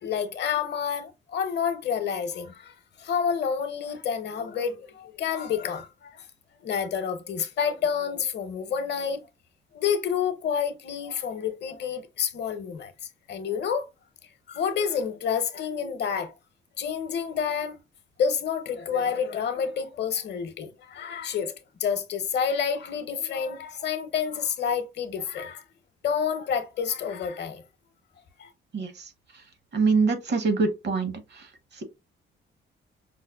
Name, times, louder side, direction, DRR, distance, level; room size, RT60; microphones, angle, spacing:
voice 1, 0.0-6.3 6.6-9.2 9.7-12.9 13.3-13.9 14.5-16.3 16.8-17.8 18.2-21.5 21.8-25.6 26.0-27.6 28.4-28.5, left 7 dB, 60° left, 0.7 m, -29 dB
voice 2, 28.7-29.4 29.7-31.8, right 4 dB, 60° right, 0.9 m, -26 dB
5.1 x 2.1 x 2.2 m
cardioid pair, 90°, 20 cm